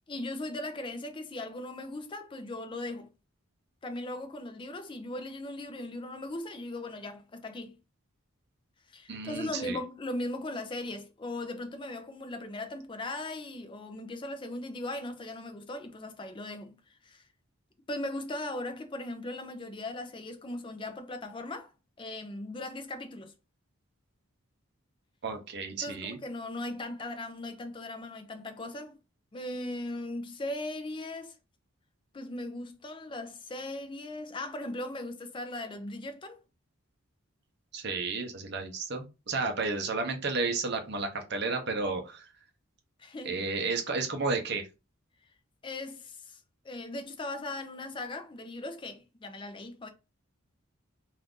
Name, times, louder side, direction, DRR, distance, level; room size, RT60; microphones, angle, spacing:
voice 1, 0.1-3.1 3.8-7.8 8.9-17.2 17.9-21.7 22.0-23.3 25.8-29.0 29.3-31.4 32.1-36.4 43.0-43.4 45.6-49.9, left 2 dB, 25° left, 0.4 m, -38 dB
voice 2, 9.1-9.8 25.2-26.2 37.7-42.2 43.2-44.7, right 3 dB, 50° right, 0.7 m, -32 dB
2.6 x 2.4 x 3.6 m
head